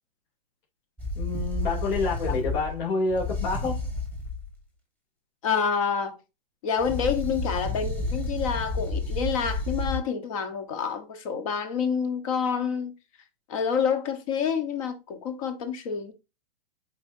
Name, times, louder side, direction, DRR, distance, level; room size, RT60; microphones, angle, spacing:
sound 1, 1.0-4.5 6.8-10.0, left 2 dB, 5° left, 1.6 m, -30 dB
voice 1, 1.1-3.8, left 3 dB, 55° left, 3.2 m, -28 dB
voice 2, 5.4-6.2 6.6-12.9 13.5-16.1, left 6 dB, 35° left, 1.3 m, -28 dB
8.0 x 4.7 x 2.7 m
hypercardioid pair, 165°, 29 cm